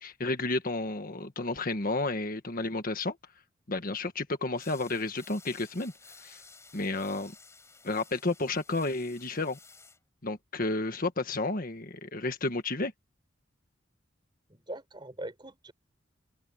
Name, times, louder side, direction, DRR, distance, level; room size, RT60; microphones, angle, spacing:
voice 1, 0.0-3.2 3.7-5.9 6.2-6.4 6.7-7.3 7.8-9.6 10.2-12.9, left 2 dB, 45° left, 1.5 m, -31 dB
sound 1, 4.6-10.0, left 4 dB, 15° left, 5.9 m, -54 dB
voice 2, 14.5-15.7, right 1 dB, 25° right, 4.8 m, -41 dB
head